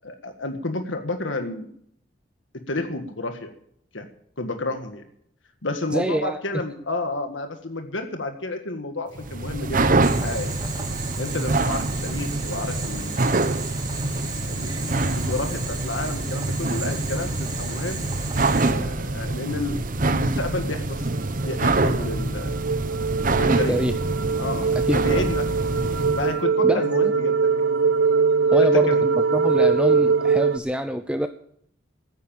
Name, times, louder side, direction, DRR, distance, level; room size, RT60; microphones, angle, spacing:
voice 1, 0.0-1.7 2.7-3.5 3.9-4.1 4.4-5.0 5.6-9.8 10.1-10.5 11.2-13.8 14.5-18.2 18.6-21.1 21.4-22.6 23.4-23.8 24.4-25.4 26.2-27.6 28.6-29.2, left 2 dB, 85° left, 6 dB, 1.7 m, -31 dB
voice 2, 5.9-6.4 23.5-23.9 24.9-25.2 26.6-27.1 28.5-28.9 29.3-31.3, equal, 5° right, 8 dB, 0.6 m, -25 dB
sound 1, 9.2-26.3, right 2 dB, 45° right, 1.0 m, -25 dB
Boiling, 10.0-18.7, right 4 dB, 20° right, 3.5 m, -35 dB
sound 2, 21.0-30.6, right 5 dB, 80° right, 0.7 m, -22 dB
14.5 x 10.0 x 7.3 m, 0.68 s
head